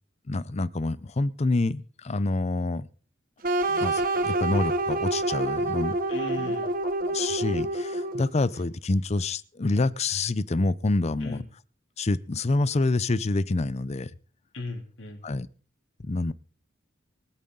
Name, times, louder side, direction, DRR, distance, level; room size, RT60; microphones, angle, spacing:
voice 1, 0.3-2.9 3.7-6.0 6.4-6.5 7.1-11.4 12.0-14.1 15.2-15.5 16.0-16.3, left 2 dB, 35° left, 0.5 m, -27 dB
sound 1, 3.4-8.4, right 2 dB, 45° right, 1.0 m, -27 dB
voice 2, 6.1-6.7 11.2-11.4 14.5-15.2, left 2 dB, 70° left, 3.2 m, -36 dB
23.5 x 8.6 x 3.8 m
head